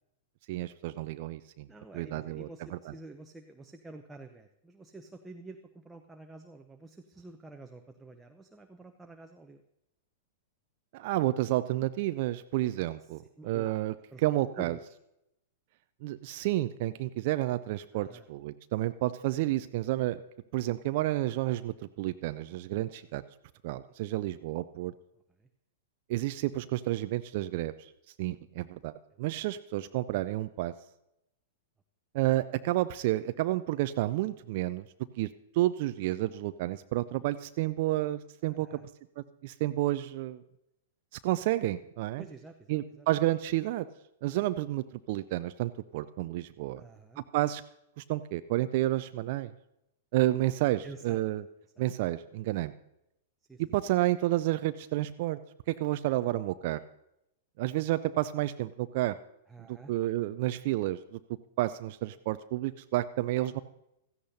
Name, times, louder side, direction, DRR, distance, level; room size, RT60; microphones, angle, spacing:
voice 1, 0.5-1.7 1.9-2.8 10.9-13.9 14.2-14.8 16.0-20.2 20.5-23.2 23.6-24.9 26.1-27.9 28.2-30.7 32.1-34.8 35.2-35.3 35.5-38.7 39.2-40.4 41.2-42.3 42.7-43.9 44.2-46.8 47.2-47.6 48.0-49.5 50.1-51.4 51.8-52.7 53.6-55.4 55.7-56.8 57.6-59.2 59.7-61.2 61.6-63.6, right 16 dB, 50° right, 11 dB, 0.4 m, -30 dB
voice 2, 1.7-9.6 13.4-13.7 14.1-14.2 14.6-14.8 17.9-18.3 25.4-25.5 38.4-38.8 42.2-43.1 46.8-47.2 50.8-51.2 51.8-51.9 53.5-53.6 59.5-59.9, right 2 dB, 10° right, 4 dB, 0.7 m, -49 dB
16.5 x 14.0 x 2.8 m, 0.84 s
figure-of-eight pair, 100°, 0 cm